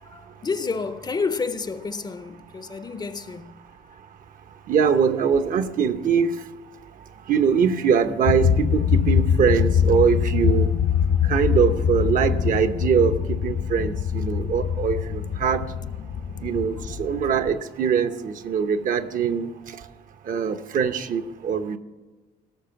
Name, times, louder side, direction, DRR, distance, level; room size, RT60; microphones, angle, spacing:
voice 1, 0.0-3.6, left 4 dB, 25° left, 0.6 m, -30 dB
voice 2, 4.7-6.3 7.3-10.7 11.3-13.1 13.4-15.6 16.4-19.5 20.3-21.8, right 7 dB, 55° right, 0.9 m, -22 dB
sound 1, 8.3-17.5, left 8 dB, 55° left, 0.9 m, -23 dB
17.5 x 6.6 x 5.8 m
cardioid pair, 110°, 17 cm